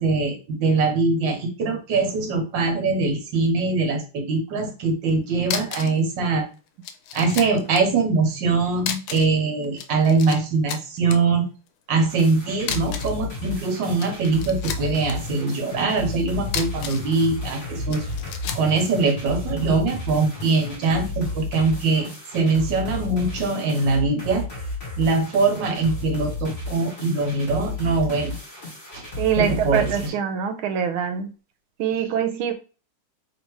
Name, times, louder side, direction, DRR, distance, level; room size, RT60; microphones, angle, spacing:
voice 1, 0.0-6.5 7.1-11.5 11.9-18.1 18.5-22.1 22.3-24.4 25.0-28.3 28.9-29.0 29.4-30.1, right 3 dB, 65° right, 1.7 m, -22 dB
sound 1, 5.1-5.2 5.4-6.0 6.3-6.4 6.8-7.8 8.8-9.4 9.6-10.4 10.7-11.2 12.6-13.2 13.8-15.1 16.4-17.1 17.9-18.7, left 8 dB, 80° left, 1.3 m, -32 dB
sound 2, 12.1-30.1, left 3 dB, 40° left, 1.7 m, -33 dB
sound 3, 14.6-19.6 19.9-20.9 21.2-21.3, left 4 dB, 55° left, 1.3 m, -36 dB
voice 2, 29.2-31.3 31.8-32.5, right 8 dB, 90° right, 1.5 m, -24 dB
3.5 x 2.8 x 4.6 m
omnidirectional pair, 2.2 m